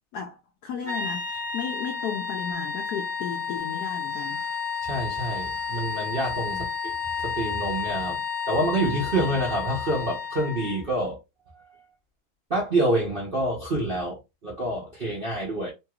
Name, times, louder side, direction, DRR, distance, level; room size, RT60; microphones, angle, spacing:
voice 1, 0.6-4.4 6.5-6.7, left 7 dB, 90° left, 0.8 m, -34 dB
sound 1, 0.8-10.8, left 6 dB, 40° left, 0.5 m, -31 dB
voice 2, 4.8-6.9 7.2-11.2 12.5-15.7, right 1 dB, 65° right, 0.5 m, -27 dB
3.2 x 3.0 x 2.3 m
omnidirectional pair, 2.3 m